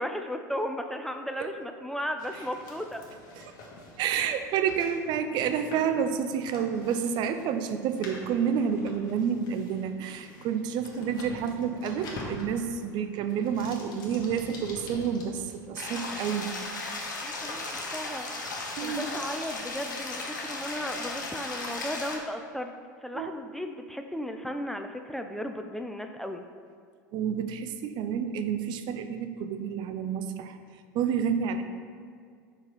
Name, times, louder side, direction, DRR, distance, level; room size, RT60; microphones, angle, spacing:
voice 1, 0.0-3.0 17.2-17.6 17.9-18.3 18.8-22.7 23.0-26.4, equal, 5° left, 5 dB, 0.4 m, -35 dB
sound 1, 2.2-22.0, left 2 dB, 50° left, 1.5 m, -47 dB
voice 2, 4.0-16.5 18.8-19.0 23.1-23.3 27.1-30.6 30.9-31.6, right 7 dB, 50° right, 9 dB, 0.5 m, -29 dB
sound 2, 15.8-22.2, left 3 dB, 85° left, 0.9 m, -36 dB
4.8 x 4.7 x 5.5 m, 2.1 s
hypercardioid pair, 80°, 10 cm